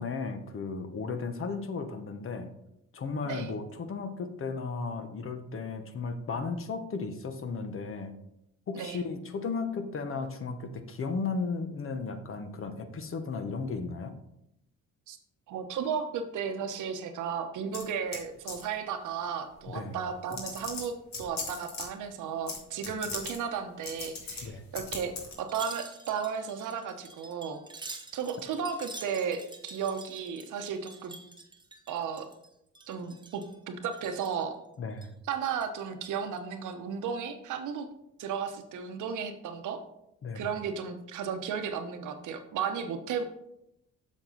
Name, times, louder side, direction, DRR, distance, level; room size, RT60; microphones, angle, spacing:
voice 1, 0.0-2.5 2.9-8.1 8.7-14.1 19.7-20.0 24.4-24.6 34.8-35.1 40.2-40.5, left 4 dB, 45° left, 8 dB, 1.0 m, -35 dB
voice 2, 3.2-3.6 8.7-9.0 15.1-15.2 15.5-25.1 25.4-27.6 28.1-31.1 31.9-32.3 32.9-34.6 35.3-37.9 38.2-39.8 40.3-43.2, right 7 dB, 80° right, 7 dB, 1.0 m, -34 dB
sound 1, 17.7-18.2 18.5-18.7 19.7-19.8 20.3-21.9 22.5-22.6 22.8-23.4 23.8-24.4 24.7-25.3, left 4 dB, 65° left, 2.1 m, -38 dB
Wind chime, 25.4-32.5 32.7-33.6 33.9-34.5 34.9-35.8 36.2-36.4, right 2 dB, 15° right, 0.9 m, -47 dB
7.6 x 6.3 x 3.9 m, 0.82 s
cardioid pair, 90°, 30 cm